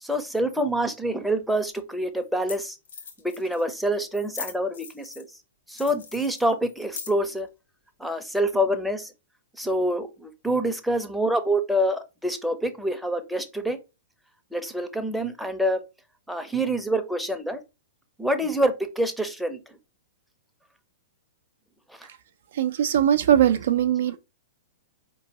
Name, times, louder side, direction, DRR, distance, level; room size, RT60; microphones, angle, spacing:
voice 1, 0.0-2.8 3.4-5.3 5.7-7.5 8.0-9.1 9.6-13.8 14.5-15.8 16.3-17.6 18.2-19.6, right 1 dB, ahead, 0.6 m, -26 dB
sound 1, 1.4-1.5 2.2-2.3 2.5-2.6 2.8-3.6 4.1-5.3 5.7-7.4, left 5 dB, 70° left, 1.0 m, -40 dB
voice 2, 22.5-24.2, right 10 dB, 60° right, 0.4 m, -20 dB
4.4 x 3.0 x 2.9 m
figure-of-eight pair, 105°, 0 cm